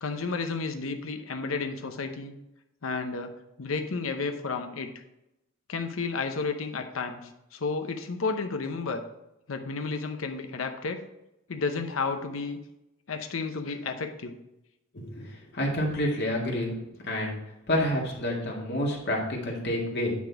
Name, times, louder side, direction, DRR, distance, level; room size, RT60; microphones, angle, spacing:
voice 1, 0.0-2.3 2.8-3.3 3.6-5.0 5.7-9.0 9.5-11.0 11.5-12.6 13.1-14.4, left 4 dB, 85° left, 6 dB, 0.7 m, -32 dB
voice 2, 14.9-15.3 15.5-16.7 17.0-17.4 17.7-20.1, left 1 dB, 55° left, -2 dB, 2.0 m, -28 dB
9.5 x 4.2 x 4.7 m, 0.88 s
head